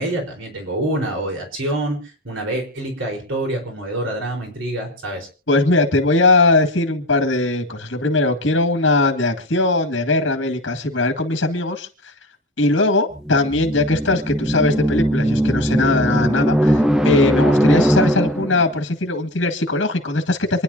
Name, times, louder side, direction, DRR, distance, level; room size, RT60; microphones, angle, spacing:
voice 1, 0.0-5.3, right 1 dB, 90° right, 4.4 m, -26 dB
voice 2, 5.5-11.9 12.6-20.6, left 2 dB, 80° left, 2.1 m, -19 dB
sound 1, 13.1-18.7, equal, 5° right, 0.6 m, -19 dB
27.0 x 10.5 x 2.8 m
head